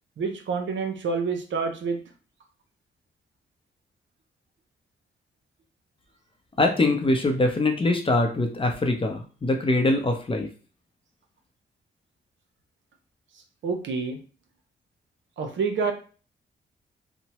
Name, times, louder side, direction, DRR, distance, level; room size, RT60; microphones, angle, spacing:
voice 1, 0.2-2.0 13.6-14.2 15.4-15.9, right 5 dB, 75° right, 5 dB, 0.6 m, -27 dB
voice 2, 6.6-10.5, left 2 dB, 25° left, 4 dB, 0.6 m, -23 dB
2.9 x 2.1 x 2.9 m, 0.38 s
cardioid pair, 75°, 20 cm